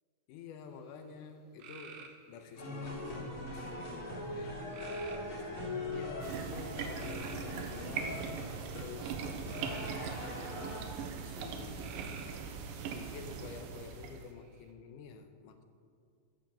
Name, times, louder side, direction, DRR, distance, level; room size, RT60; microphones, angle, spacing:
voice 1, 0.3-8.2 8.7-10.3 11.2-12.5 12.9-15.6, left 6 dB, 75° left, 7 dB, 2.2 m, -50 dB
sound 1, 1.6-2.6 4.7-5.5 6.9-8.2 9.5-10.6 11.8-12.5 14.1-14.7, right 6 dB, 70° right, 1.7 m, -51 dB
sound 2, 2.6-10.8, left 1 dB, 25° left, 3.0 m, -41 dB
sound 3, 6.2-14.3, right 6 dB, 85° right, 2.5 m, -41 dB
14.5 x 5.1 x 7.4 m, 2.4 s
omnidirectional pair, 3.9 m